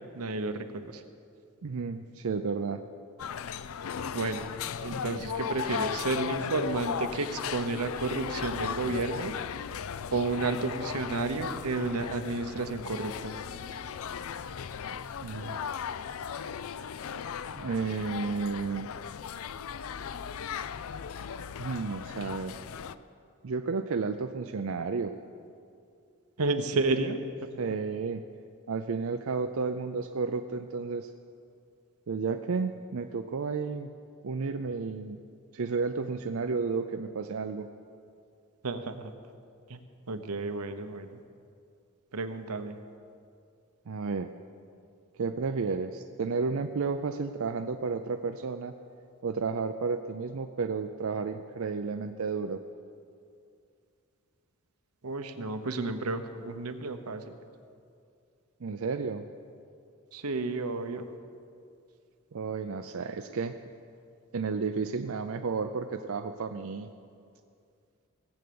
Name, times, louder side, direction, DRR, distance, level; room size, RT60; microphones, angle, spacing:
voice 1, 0.1-1.0 4.1-4.5 4.8-9.3 10.1-13.3 26.4-27.5 38.6-39.1 39.7-39.8 40.1-41.2 42.1-42.8 55.0-57.4 60.1-61.1, right 3 dB, 85° right, 8 dB, 0.9 m, -31 dB
voice 2, 1.6-2.8 15.2-15.6 17.5-18.9 21.6-22.6 23.4-25.1 27.6-28.2 28.7-31.1 32.1-33.9 34.2-35.2 35.5-37.7 43.9-44.3 45.2-48.7 49.2-52.6 58.6-59.3 62.3-63.6 64.3-66.9, right 4 dB, 65° right, 7 dB, 0.5 m, -32 dB
sound 1, 3.2-23.0, left 7 dB, 70° left, 0.4 m, -37 dB
17.5 x 8.0 x 7.0 m, 2.4 s
head